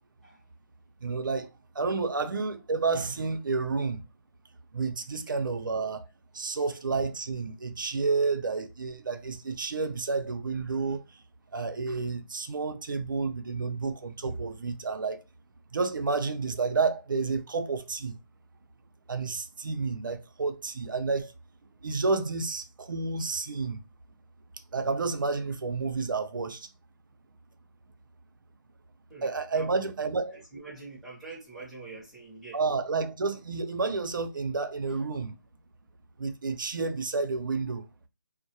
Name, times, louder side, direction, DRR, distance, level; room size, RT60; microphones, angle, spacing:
voice 1, 1.0-1.5 1.7-4.0 4.7-6.1 6.3-11.2 11.5-15.2 15.7-18.1 19.1-21.3 21.8-23.8 24.7-26.7 29.2-30.3 32.5-35.4 36.2-37.9, right 4 dB, 90° right, 0.5 m, -30 dB
voice 2, 30.3-32.6 34.9-35.1, right 3 dB, ahead, 0.5 m, -45 dB
2.2 x 2.1 x 2.7 m
hypercardioid pair, 165°, 11 cm